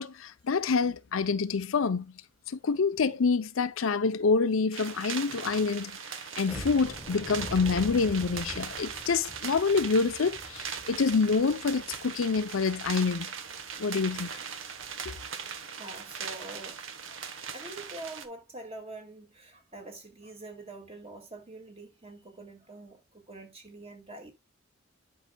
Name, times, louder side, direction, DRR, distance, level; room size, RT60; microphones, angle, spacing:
voice 1, 0.0-2.1 2.5-6.0 6.4-13.3 13.8-14.3 15.1-15.2, left 4 dB, 80° left, 0.6 m, -27 dB
sound 1, 4.7-18.3, right 6 dB, 70° right, 1.1 m, -40 dB
voice 2, 6.3-6.6 10.6-10.7 13.8-14.0 14.5-14.9 15.1-15.2 15.8-16.8 17.1-17.2 17.5-24.3, right 2 dB, 30° right, 2.0 m, -46 dB
sound 2, 6.5-13.2 13.6-13.7 14.1-14.3 14.8-14.9, left 1 dB, 5° left, 1.3 m, -44 dB
10.5 x 5.6 x 2.2 m
head